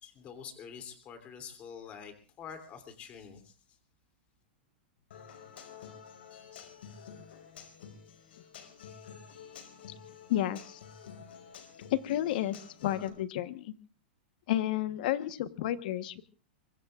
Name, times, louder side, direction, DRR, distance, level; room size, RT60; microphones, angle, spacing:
voice 1, 0.0-3.5, left 7 dB, 25° left, 7 dB, 3.0 m, -46 dB
Human voice / Acoustic guitar, 5.1-13.1, left 7 dB, 80° left, 5.2 m, -50 dB
voice 2, 10.3-10.8 11.9-12.5 12.8-13.7 14.5-16.2, left 13 dB, 50° left, 12 dB, 1.2 m, -31 dB
24.0 x 24.0 x 2.5 m, 0.38 s
supercardioid pair, 160°, 6 cm